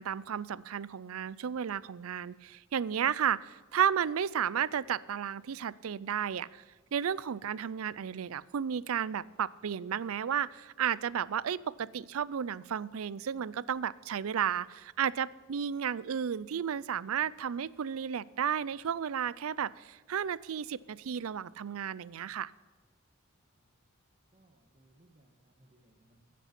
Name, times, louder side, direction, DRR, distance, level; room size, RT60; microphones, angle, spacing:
voice 1, 0.0-6.6 6.9-22.5, right 8 dB, 80° right, 20 dB, 0.4 m, -33 dB
voice 2, 23.5-23.9 24.3-26.3, right 1 dB, 35° right, -1 dB, 1.3 m, -65 dB
15.5 x 8.4 x 6.0 m, 1.4 s
head